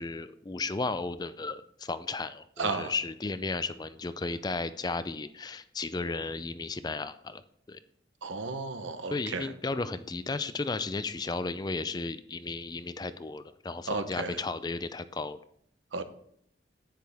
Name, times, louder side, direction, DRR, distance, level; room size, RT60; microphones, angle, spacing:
voice 1, 0.0-7.4 7.7-7.8 9.1-15.4, left 3 dB, 20° left, 13 dB, 0.4 m, -34 dB
voice 2, 2.6-2.9 8.2-9.5 13.9-14.4 15.9-16.0, right 4 dB, 80° right, 10 dB, 1.0 m, -33 dB
10.5 x 9.6 x 3.5 m, 0.68 s
head